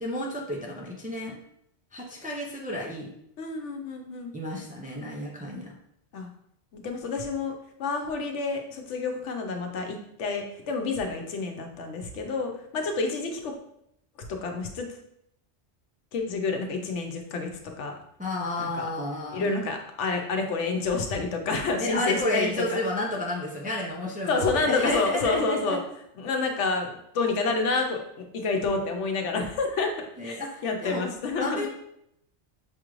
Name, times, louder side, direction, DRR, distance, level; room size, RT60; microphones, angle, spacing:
voice 1, 0.0-1.4 1.9-3.1 4.3-5.7 18.2-19.5 21.8-25.8 30.2-31.0 31.4-31.7, left 1 dB, 10° right, -2 dB, 0.4 m, -31 dB
voice 2, 3.4-4.3 6.1-6.3 6.7-13.5 14.3-14.9 16.1-18.0 18.6-18.9 19.3-22.8 24.3-25.8 26.2-30.4 30.6-31.7, left 3 dB, 90° left, 3 dB, 1.0 m, -29 dB
6.0 x 2.5 x 3.0 m, 0.75 s
omnidirectional pair, 1.2 m